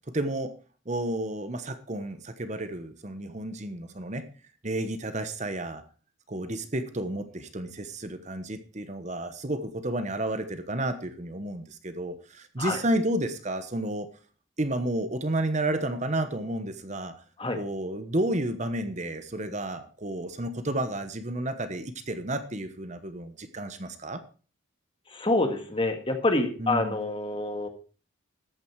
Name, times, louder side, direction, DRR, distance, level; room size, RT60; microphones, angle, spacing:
voice 1, 0.1-0.5 0.9-4.2 4.6-5.8 6.3-14.1 14.6-17.1 17.5-24.2 26.6-27.1, right 1 dB, 35° right, 10 dB, 1.1 m, -31 dB
voice 2, 25.1-27.7, left 2 dB, 25° left, 6 dB, 1.8 m, -27 dB
13.5 x 9.2 x 4.6 m, 0.37 s
head